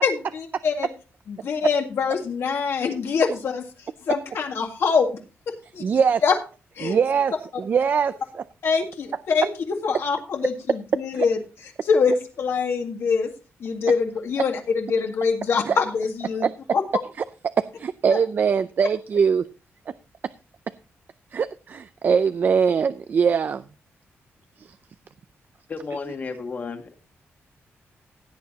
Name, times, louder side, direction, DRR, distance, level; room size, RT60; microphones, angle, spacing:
voice 1, 0.0-0.9 1.3-3.6 4.1-5.1 5.7-5.8 6.2-6.3 6.8-7.0 8.6-11.4 11.8-13.3 13.6-16.5 16.7-16.8 18.1-18.2, left 5 dB, 60° left, 2.0 m, -24 dB
voice 2, 5.8-6.2 6.8-7.3 7.6-8.4 11.1-11.3 15.7-15.8 16.4-16.8 17.6-19.5 21.3-23.6 24.6-24.7, right 6 dB, 40° right, 0.4 m, -22 dB
voice 3, 25.7-26.9, left 4 dB, 35° left, 1.7 m, -33 dB
16.5 x 9.5 x 2.9 m
wide cardioid pair, 175°, 5 cm